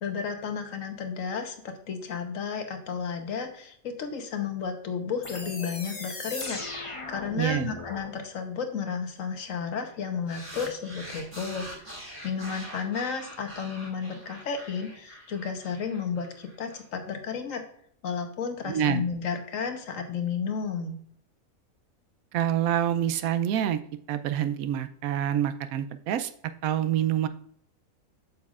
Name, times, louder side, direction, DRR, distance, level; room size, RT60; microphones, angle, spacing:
voice 1, 0.0-11.7 12.2-17.6 18.0-21.0, left 6 dB, 70° left, 5 dB, 1.3 m, -32 dB
sound 1, 5.2-8.1, left 2 dB, 25° left, 0.9 m, -38 dB
voice 2, 7.4-7.7 18.6-19.0 22.3-23.8 24.1-26.3 26.6-27.3, right 10 dB, 80° right, 11 dB, 1.0 m, -26 dB
sound 2, 10.3-16.8, right 1 dB, 20° right, 2.1 m, -44 dB
8.1 x 6.7 x 2.4 m, 0.62 s
omnidirectional pair, 1.5 m